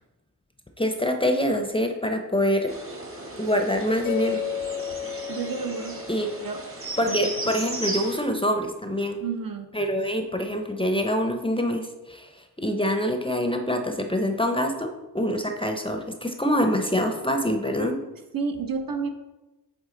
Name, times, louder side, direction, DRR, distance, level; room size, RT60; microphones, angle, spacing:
voice 1, 0.8-2.7 3.4-4.4 6.1-6.3 7.0-9.2 9.7-12.3 12.6-14.9 15.1-18.0, equal, 15° left, 4 dB, 0.6 m, -25 dB
sound 1, 2.7-8.2, right 2 dB, 30° right, 1.2 m, -36 dB
Mallet percussion, 4.1-7.0, left 11 dB, 60° left, 0.5 m, -34 dB
voice 2, 5.1-6.0 6.4-6.6 7.0-7.6 9.2-9.7 18.3-19.1, right 5 dB, 55° right, 5 dB, 0.8 m, -31 dB
8.2 x 3.7 x 3.8 m, 1.1 s
wide cardioid pair, 90°, 40 cm